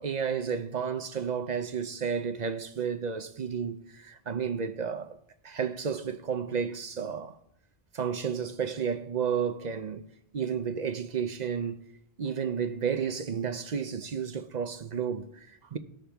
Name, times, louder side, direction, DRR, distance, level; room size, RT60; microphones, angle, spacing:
voice 1, 0.0-5.2 5.4-7.4 7.9-10.1 10.3-11.8 12.2-15.8, right 7 dB, 50° right, 0.6 m, -32 dB
19.0 x 6.6 x 3.4 m
omnidirectional pair, 1.1 m